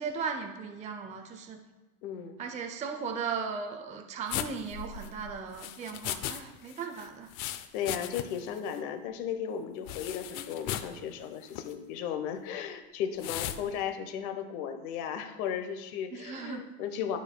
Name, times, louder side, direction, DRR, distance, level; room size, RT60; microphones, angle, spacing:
voice 1, 0.0-1.6 2.4-7.3 16.1-16.6, right 5 dB, 15° right, 4 dB, 0.4 m, -37 dB
voice 2, 2.0-2.4 7.7-17.2, left 8 dB, 70° left, 7 dB, 1.0 m, -35 dB
sound 1, 4.3-6.4 6.7-8.5 8.7-8.8 9.9-11.0 11.5-11.7 13.2-13.6, left 11 dB, 50° left, 0.5 m, -37 dB
12.5 x 4.6 x 2.2 m, 1.2 s
supercardioid pair, 125°, 44 cm